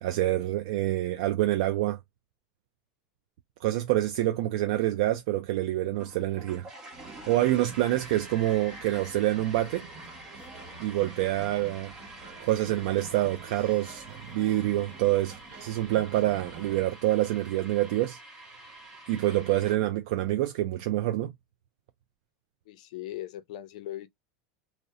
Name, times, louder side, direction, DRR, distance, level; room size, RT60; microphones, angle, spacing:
voice 1, 0.0-2.0 3.6-6.7 7.3-9.9 10.8-11.9 12.4-18.2 19.1-21.3, right 15 dB, 65° right, 0.3 m, -27 dB
sound 1, 5.9-19.7, right 1 dB, 10° right, 0.9 m, -47 dB
sound 2, 6.9-16.9, right 3 dB, 35° right, 1.0 m, -49 dB
voice 2, 22.7-24.1, left 13 dB, 70° left, 0.5 m, -39 dB
2.7 x 2.0 x 2.4 m
supercardioid pair, 160°, 4 cm